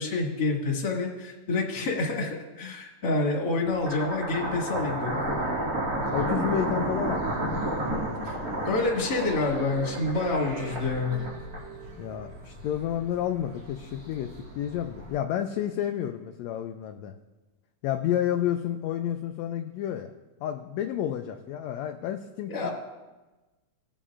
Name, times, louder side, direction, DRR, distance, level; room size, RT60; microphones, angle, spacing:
voice 1, 0.0-5.2 8.2-8.3 8.7-11.2 22.5-22.7, left 3 dB, 35° left, -3 dB, 2.1 m, -28 dB
sound 1, 3.7-11.9, right 1 dB, 35° right, 2.1 m, -31 dB
sound 2, 5.1-15.2, equal, 75° right, 4.3 m, -46 dB
voice 2, 6.1-8.7 12.0-17.1 17.8-20.1 20.4-22.7, left 10 dB, 80° left, 6 dB, 1.6 m, -31 dB
sound 3, 8.4-12.8, right 4 dB, 20° right, 2.7 m, -43 dB
19.5 x 7.1 x 2.5 m, 1.2 s
omnidirectional pair, 3.5 m